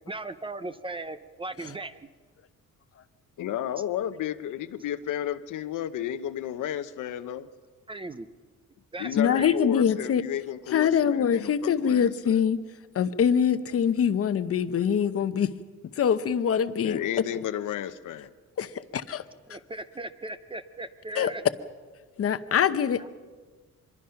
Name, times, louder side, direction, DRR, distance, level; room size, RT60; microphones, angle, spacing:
voice 1, 0.1-2.0 7.9-8.3 8.9-9.5 19.5-21.4 23.0-23.1, right 2 dB, 15° right, 12 dB, 0.6 m, -37 dB
voice 2, 3.4-7.5 9.0-12.4 16.8-18.3 22.1-22.3, left 11 dB, 70° left, 12 dB, 0.9 m, -33 dB
voice 3, 9.2-10.2 10.7-12.6 12.9-15.5 16.0-17.0 18.6-19.2 21.2-21.3 22.2-23.1, left 8 dB, 45° left, 12 dB, 0.9 m, -24 dB
25.0 x 22.0 x 5.8 m, 1.4 s
cardioid pair, 155°, 32 cm